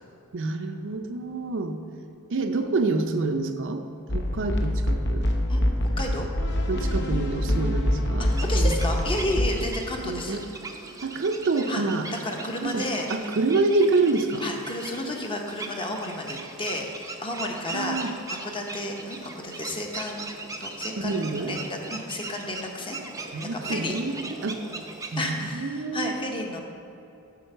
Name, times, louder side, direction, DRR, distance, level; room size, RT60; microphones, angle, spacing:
voice 1, 0.3-1.8 2.3-3.8 4.1-5.3 6.7-8.3 8.5-8.7 10.0-10.4 11.0-12.1 12.6-12.8 13.1-14.4 17.7-18.1 21.0-21.5 23.3-24.1 24.4-24.6 25.1-26.1, right 3 dB, 55° right, 6 dB, 0.6 m, -27 dB
sound 1, 4.1-9.7, left 1 dB, 55° left, 0.8 m, -25 dB
sound 2, 8.2-25.5, right 3 dB, 15° right, 0.5 m, -40 dB
voice 2, 8.3-10.4 11.7-11.8 12.1-13.3 14.4-20.3 20.6-23.0 23.5-24.0 25.2-26.6, left 1 dB, 25° left, 1 dB, 0.9 m, -32 dB
7.7 x 5.2 x 6.6 m, 2.8 s
head